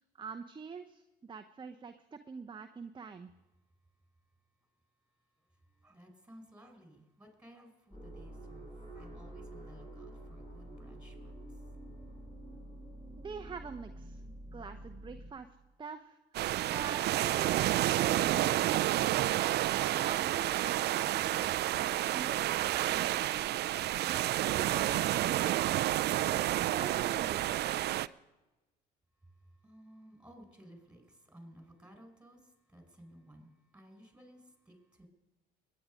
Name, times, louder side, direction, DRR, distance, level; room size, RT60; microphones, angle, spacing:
voice 1, 0.2-3.3 13.2-14.2 14.5-15.5 15.8-16.2 16.6-19.1 19.8-23.2 23.9-27.4, right 5 dB, 25° right, 6 dB, 0.8 m, -45 dB
voice 2, 5.8-11.1 29.6-35.1, equal, 5° right, 4 dB, 5.0 m, -56 dB
sound 1, 7.9-15.3, right 1 dB, 20° left, 6.5 m, -48 dB
sound 2, 16.3-28.1, right 14 dB, 55° right, 0.4 m, -30 dB
21.5 x 9.6 x 5.2 m, 1.1 s
hypercardioid pair, 70°, 21 cm